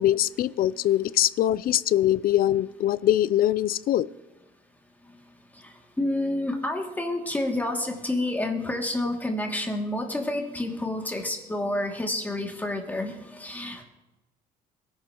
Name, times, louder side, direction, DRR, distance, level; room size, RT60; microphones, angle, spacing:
voice 1, 0.0-4.1, left 12 dB, 60° left, 19 dB, 0.5 m, -23 dB
voice 2, 6.0-13.8, left 1 dB, 10° left, 0 dB, 2.5 m, -29 dB
23.0 x 11.5 x 3.0 m, 1.1 s
cardioid pair, 110°, 17 cm